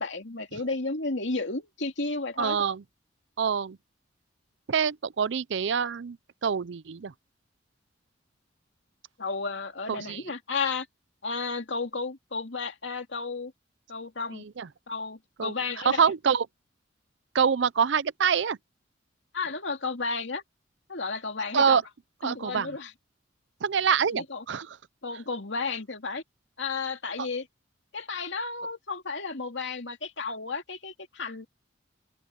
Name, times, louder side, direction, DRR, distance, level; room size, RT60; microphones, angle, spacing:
voice 1, 0.0-2.6 9.2-10.9 11.2-13.5 13.9-14.4 14.9-16.1 19.3-20.4 20.9-21.8 22.2-22.9 24.1-24.4 25.0-26.2 26.6-27.5 27.9-31.5, left 4 dB, 70° left, 2.6 m, -33 dB
voice 2, 2.4-2.8 3.4-3.8 4.7-6.2 6.4-7.1 9.9-10.2 14.3-14.7 15.4-15.5 15.8-16.5 17.3-18.6 21.5-21.8 22.2-22.7 23.6-24.7 27.2-27.3, right 6 dB, 70° right, 0.5 m, -25 dB
open air
head